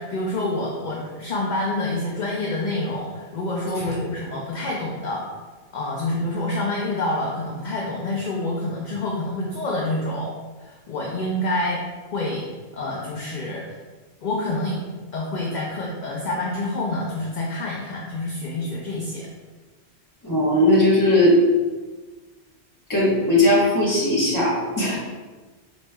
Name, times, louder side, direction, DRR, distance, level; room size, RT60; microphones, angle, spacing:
voice 1, 0.0-5.2 5.7-10.3 10.6-11.8 12.1-12.5 12.7-13.8 14.2-14.8 15.1-19.3, left 2 dB, 50° left, -3 dB, 0.6 m, -27 dB
voice 2, 20.2-21.4 22.9-25.0, left 1 dB, 20° left, -6 dB, 0.9 m, -18 dB
5.2 x 3.1 x 2.2 m, 1.3 s
omnidirectional pair, 1.1 m